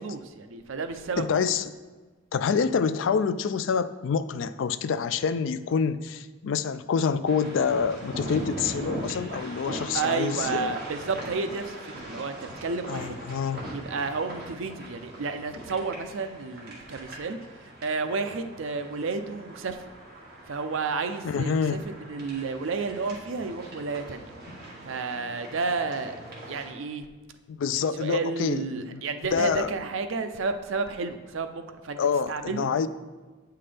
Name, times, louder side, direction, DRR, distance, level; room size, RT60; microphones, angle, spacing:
voice 1, 0.0-1.2 9.9-13.2 13.7-17.4 17.8-19.8 20.5-24.2 24.9-26.2 26.5-27.0 27.8-32.0 32.3-32.7, right 4 dB, 80° right, 7 dB, 0.5 m, -31 dB
voice 2, 1.2-1.7 2.3-10.8 12.9-13.7 21.2-21.9 27.5-29.0 29.3-29.7 32.0-32.9, left 6 dB, 75° left, 13 dB, 0.3 m, -27 dB
sound 1, 7.3-26.7, right 1 dB, 50° right, 1.8 m, -41 dB
8.5 x 5.6 x 3.4 m, 1.3 s
head